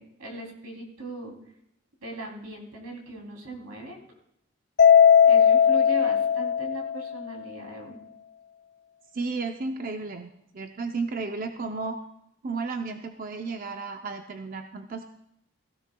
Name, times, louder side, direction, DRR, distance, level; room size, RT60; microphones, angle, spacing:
voice 1, 0.0-1.3 2.0-4.0 5.3-8.0, right 1 dB, 85° right, 0 dB, 3.1 m, -39 dB
Mallet percussion, 4.8-7.2, left 7 dB, 50° left, 0.5 m, -18 dB
voice 2, 9.1-12.0 12.4-15.1, right 4 dB, 40° right, 5 dB, 0.6 m, -33 dB
16.5 x 16.5 x 2.3 m, 0.77 s
head